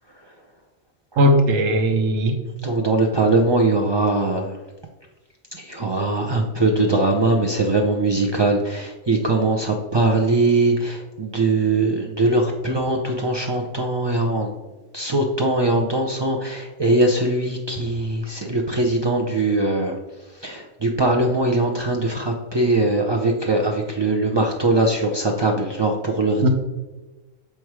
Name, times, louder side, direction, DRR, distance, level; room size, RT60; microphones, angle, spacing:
voice 1, 1.2-2.4 26.4-26.5, equal, 75° right, 5 dB, 1.3 m, -17 dB
voice 2, 2.6-4.6 5.5-14.5 14.9-26.5, right 2 dB, 45° right, 1 dB, 0.3 m, -21 dB
6.9 x 4.6 x 4.7 m, 1.2 s
omnidirectional pair, 1.4 m